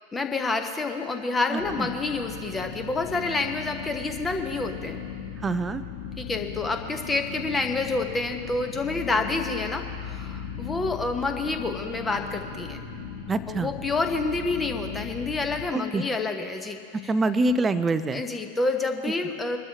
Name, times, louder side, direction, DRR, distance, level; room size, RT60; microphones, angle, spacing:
voice 1, 0.1-5.0 6.2-12.8 13.5-17.1 18.1-19.6, left 3 dB, 15° left, 5 dB, 1.1 m, -28 dB
voice 2, 1.5-1.9 5.4-5.8 13.3-13.7 15.7-16.0 16.9-18.2, right 2 dB, 15° right, 11 dB, 0.5 m, -25 dB
sound 1, 1.6-15.7, left 7 dB, 60° left, 2.6 m, -38 dB
23.5 x 12.5 x 2.9 m, 2.3 s
figure-of-eight pair, 90°, 0 cm